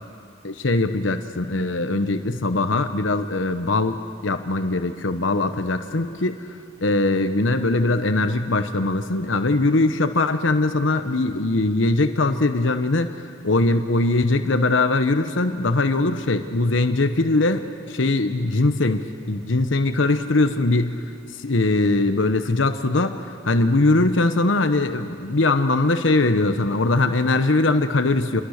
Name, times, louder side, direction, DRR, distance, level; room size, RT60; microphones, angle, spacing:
voice 1, 0.4-6.4 6.8-13.1 13.4-21.0 21.4-23.2 23.4-28.4, left 2 dB, 80° left, 8 dB, 1.1 m, -21 dB
28.0 x 22.5 x 6.6 m, 2.4 s
head